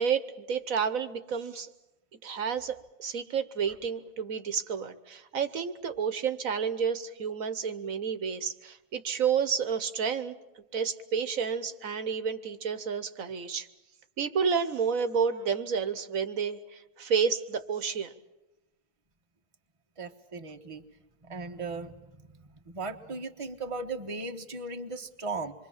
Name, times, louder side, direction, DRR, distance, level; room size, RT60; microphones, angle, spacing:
voice 1, 0.0-1.7 2.2-13.7 14.2-18.1, right 6 dB, 70° right, 12 dB, 1.5 m, -30 dB
voice 2, 20.0-20.8 21.3-21.9 22.7-25.5, right 3 dB, 25° right, 5 dB, 1.3 m, -37 dB
26.5 x 23.5 x 7.3 m, 1.0 s
omnidirectional pair, 1.5 m